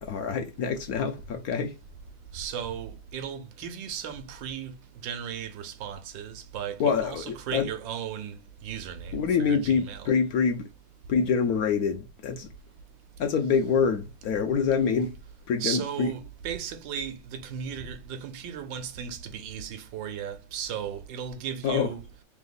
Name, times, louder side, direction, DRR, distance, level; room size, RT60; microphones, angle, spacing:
voice 1, 0.0-1.7 6.8-7.7 9.1-10.6 11.1-12.5 13.2-15.1 15.5-16.1 21.6-21.9, left 6 dB, 70° left, 0.9 m, -26 dB
voice 2, 2.3-4.7 5.0-8.4 8.6-10.1 15.6-22.0, right 8 dB, 85° right, 1.4 m, -36 dB
3.5 x 2.9 x 3.9 m
omnidirectional pair, 2.0 m